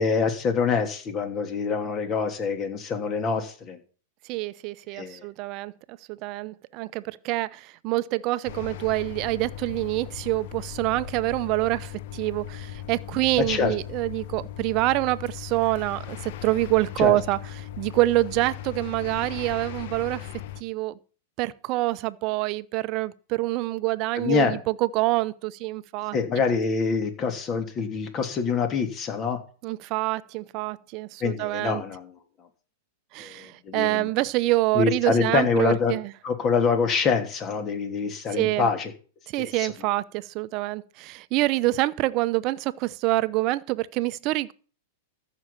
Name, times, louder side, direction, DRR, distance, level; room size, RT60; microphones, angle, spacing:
voice 1, 0.0-3.8 4.9-5.2 13.5-13.7 17.0-17.2 24.2-24.6 26.1-29.4 31.2-32.2 33.2-34.1 34.7-35.9 36.2-38.9 39.4-39.7, left 5 dB, 30° left, 2.9 m, -25 dB
voice 2, 4.3-5.7 6.1-17.4 17.8-20.3 20.6-20.9 21.4-26.2 29.6-31.8 33.1-36.1 38.4-38.7 39.3-44.5, right 19 dB, 45° right, 0.8 m, -26 dB
sound 1, 8.4-20.6, left 11 dB, 60° left, 0.9 m, -38 dB
14.0 x 6.3 x 7.4 m
hypercardioid pair, 110°, 0 cm